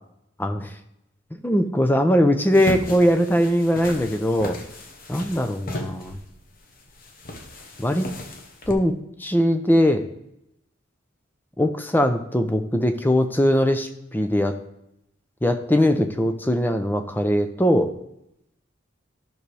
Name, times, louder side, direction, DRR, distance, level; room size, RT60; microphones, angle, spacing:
voice 1, 0.4-0.7 1.4-4.6 5.1-6.2 7.8-8.1 8.7-8.9 9.2-10.0 11.6-14.6 15.4-17.9, equal, 10° left, 7 dB, 0.6 m, -21 dB
sound 1, 2.5-8.7, left 1 dB, 45° left, 1.0 m, -35 dB
12.0 x 6.2 x 3.4 m, 0.80 s
head